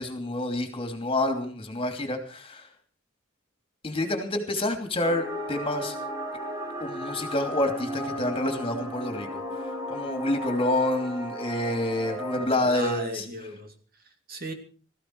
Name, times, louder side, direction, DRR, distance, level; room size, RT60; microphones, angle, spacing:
voice 1, 0.0-2.7 3.8-6.0 6.8-13.2, left 1 dB, 25° left, 2.9 m, -28 dB
film for a music, 5.0-12.5, equal, 15° right, 4.3 m, -35 dB
voice 2, 12.3-14.5, right 1 dB, 45° right, 2.6 m, -37 dB
17.5 x 15.0 x 4.7 m
head